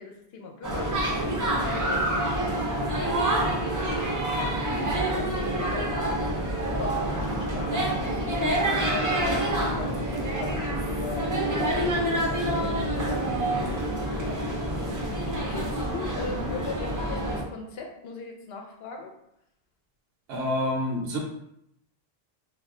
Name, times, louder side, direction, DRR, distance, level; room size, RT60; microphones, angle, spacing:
voice 1, 0.0-6.3 6.7-8.1 8.7-11.3 12.3-15.1 15.5-19.1, left 4 dB, 75° left, 2 dB, 0.8 m, -40 dB
sound 1, 0.6-17.4, right 1 dB, 30° right, 0.3 m, -27 dB
voice 2, 20.3-21.2, left 1 dB, 80° right, -1 dB, 0.8 m, -27 dB
2.3 x 2.2 x 3.6 m, 0.79 s
omnidirectional pair, 1.0 m